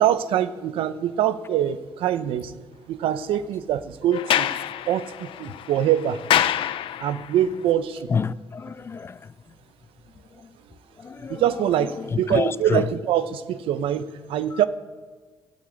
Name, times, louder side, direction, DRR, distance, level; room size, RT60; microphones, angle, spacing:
voice 1, 0.0-2.5 2.9-4.5 4.9-6.2 7.0-8.1 11.3-14.6, right 10 dB, 85° right, 0.8 m, -24 dB
Sliding door, 4.1-7.4, left 11 dB, 70° left, 0.6 m, -26 dB
voice 2, 8.1-9.3 11.0-11.4 12.0-12.9 14.5-14.6, left 5 dB, 25° left, 0.4 m, -28 dB
15.0 x 8.5 x 8.3 m
cardioid pair, 130°, 9 cm